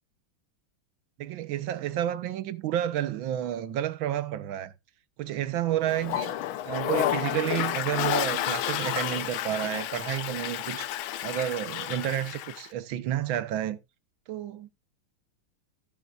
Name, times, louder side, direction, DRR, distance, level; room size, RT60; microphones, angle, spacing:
voice 1, 1.2-4.7 5.2-6.3 6.6-10.9 11.2-13.8 14.3-14.7, right 11 dB, 75° right, 1.6 m, -30 dB
Toilet flush, 5.9-12.7, left 13 dB, 80° left, 1.5 m, -31 dB
15.0 x 7.0 x 2.4 m
omnidirectional pair, 2.2 m